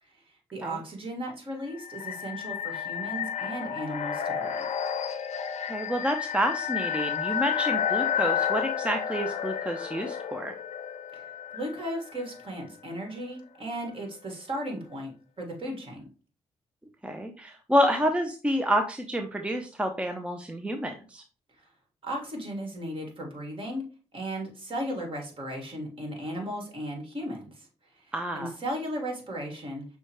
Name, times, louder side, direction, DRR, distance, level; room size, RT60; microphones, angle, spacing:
voice 1, 0.5-4.5 11.1-16.0 21.6-21.7 22.0-23.9 24.1-27.7 27.9-28.1 28.3-29.8, equal, 45° right, 1 dB, 1.6 m, -36 dB
sound 1, 1.6-12.4, left 8 dB, 65° left, 0.6 m, -31 dB
voice 2, 5.7-10.5 17.0-21.2 28.1-28.5, equal, 10° right, 5 dB, 0.5 m, -28 dB
6.1 x 2.2 x 2.9 m, 0.37 s
supercardioid pair, 55°, 12 cm